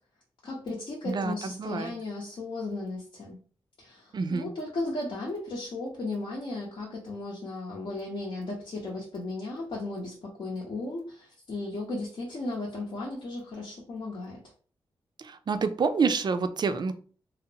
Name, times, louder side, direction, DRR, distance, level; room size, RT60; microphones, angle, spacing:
voice 1, 0.4-3.4 3.8-14.4, left 2 dB, 65° left, -4 dB, 0.7 m, -35 dB
voice 2, 1.1-1.9 4.1-4.5 15.2-16.9, right 5 dB, 50° right, 9 dB, 0.4 m, -28 dB
2.7 x 2.0 x 2.7 m, 0.42 s
cardioid pair, 60°, 10 cm